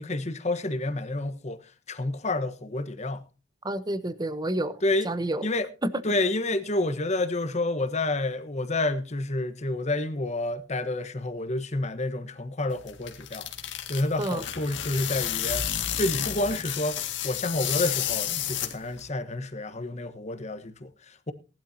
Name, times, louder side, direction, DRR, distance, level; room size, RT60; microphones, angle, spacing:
voice 1, 0.0-1.6 1.9-3.2 4.8-5.1 5.4-5.7 6.0-13.5 13.9-15.7 16.0-17.0 17.2-21.3, left 2 dB, 40° left, 1.2 m, -29 dB
voice 2, 3.6-5.5 5.8-5.9 14.2-14.4, right 1 dB, 20° right, 0.9 m, -29 dB
sound 1, 12.7-19.1, left 10 dB, 75° left, 2.0 m, -31 dB
18.5 x 12.0 x 2.8 m
head